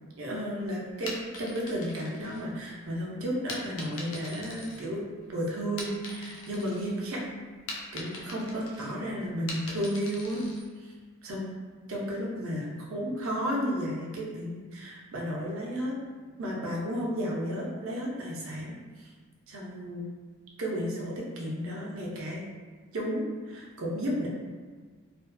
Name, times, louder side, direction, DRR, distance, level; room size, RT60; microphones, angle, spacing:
voice 1, 0.2-5.0 5.3-7.2 7.9-10.4 10.8-10.9 11.2-11.5 11.9-16.0 16.4-19.1 19.5-20.0 20.6-22.4 22.9-24.3, equal, 85° right, -3 dB, 0.6 m, -33 dB
sound 1, 0.9-2.9 3.5-5.3 5.6-6.9 7.3-10.7, left 2 dB, 90° left, 0.5 m, -42 dB
2.5 x 2.4 x 2.2 m, 1.4 s
head